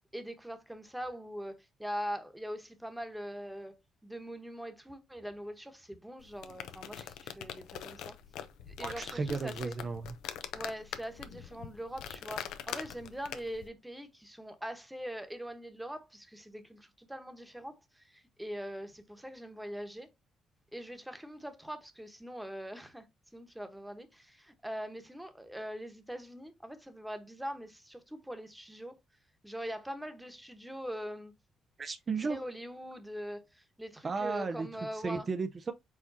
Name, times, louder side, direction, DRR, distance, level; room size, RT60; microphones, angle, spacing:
voice 1, 0.1-8.2 8.8-9.7 10.5-20.1 20.7-23.1 23.3-29.0 29.4-31.3 32.2-35.3, equal, 5° right, 1.1 m, -42 dB
sound 1, 6.2-13.7, left 10 dB, 90° left, 0.6 m, -43 dB
voice 2, 8.8-10.0 31.8-32.4 34.0-34.7 35.0-35.7, right 4 dB, 40° right, 0.5 m, -34 dB
4.8 x 4.2 x 2.7 m
cardioid pair, 90°, 0 cm